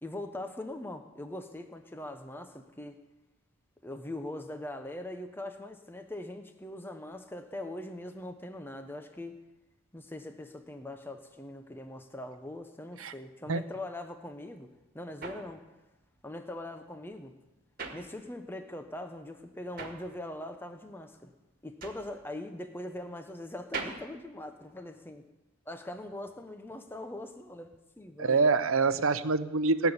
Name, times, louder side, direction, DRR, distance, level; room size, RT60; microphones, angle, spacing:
voice 1, 0.0-3.0 3.8-9.4 9.9-14.7 14.9-15.6 16.2-17.3 17.9-21.3 21.6-25.2 25.7-28.4, left 1 dB, 10° left, 6 dB, 0.8 m, -41 dB
sound 1, 14.4-18.7 19.0-25.3, right 4 dB, 45° right, 1.8 m, -44 dB
voice 2, 28.2-29.9, right 4 dB, 80° right, 12 dB, 0.8 m, -26 dB
18.5 x 7.0 x 9.8 m, 1.0 s
head